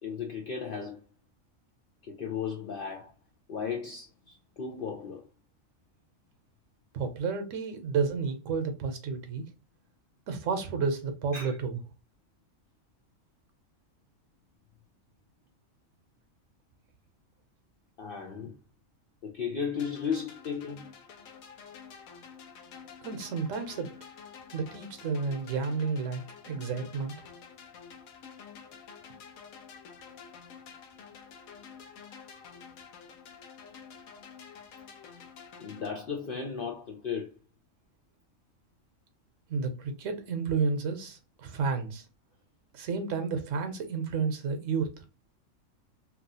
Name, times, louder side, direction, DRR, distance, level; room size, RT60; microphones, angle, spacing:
voice 1, 0.0-1.0 2.0-3.1 3.5-5.3 11.3-11.6 18.0-18.6 19.2-20.9 35.6-37.3, left 6 dB, 70° left, 0.5 m, -35 dB
voice 2, 6.9-9.4 10.3-11.8 23.0-23.9 24.5-27.1 39.5-42.0 42.7-44.9, right 5 dB, 70° right, 1.0 m, -31 dB
sound 1, 19.7-35.9, left 6 dB, 85° left, 1.1 m, -49 dB
2.9 x 2.3 x 2.6 m
omnidirectional pair, 1.4 m